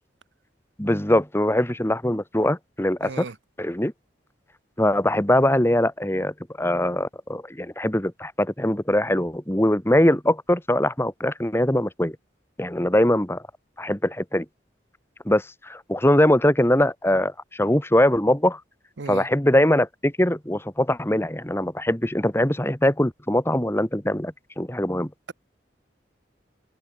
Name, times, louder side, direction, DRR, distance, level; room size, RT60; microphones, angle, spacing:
voice 1, 0.8-3.3 3.6-3.9 4.8-12.2 12.6-13.4 13.8-14.5 15.3-18.6 19.1-25.1, left 1 dB, 15° left, 2.0 m, -22 dB
voice 2, 3.0-3.3 19.0-19.3, right 4 dB, 85° right, 0.8 m, -35 dB
head